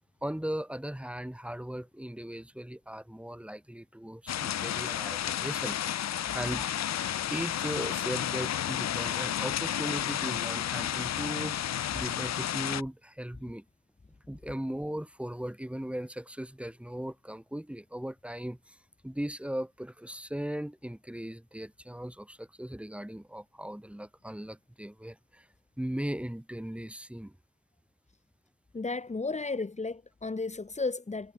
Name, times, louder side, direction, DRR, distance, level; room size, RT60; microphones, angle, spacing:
voice 1, 0.2-6.7 7.3-13.6 14.3-18.8 19.0-25.5 25.8-27.3, equal, 5° right, 7.2 m, -38 dB
sound 1, 4.3-12.8, left 11 dB, 60° left, 1.6 m, -32 dB
voice 2, 28.7-31.3, left 3 dB, 20° left, 4.5 m, -33 dB
cardioid pair, 90°, 30 cm